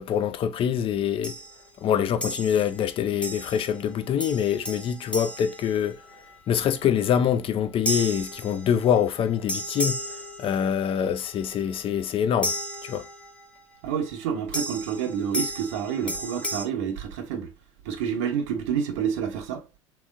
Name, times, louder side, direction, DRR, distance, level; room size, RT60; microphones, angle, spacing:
voice 1, 0.0-1.4 1.8-6.0 6.5-10.0 10.4-12.5 12.8-13.0, left 8 dB, 35° left, 0.6 m, -25 dB
sound 1, 1.2-1.6 2.2-2.8 3.2-3.8 4.2-6.3 7.9-9.0 9.5-10.9 12.4-13.5 14.5-16.6, equal, 5° left, 0.9 m, -33 dB
voice 2, 13.8-17.5 17.8-19.7, right 7 dB, 60° right, 1.0 m, -28 dB
3.5 x 3.0 x 3.6 m
figure-of-eight pair, 75°, 17 cm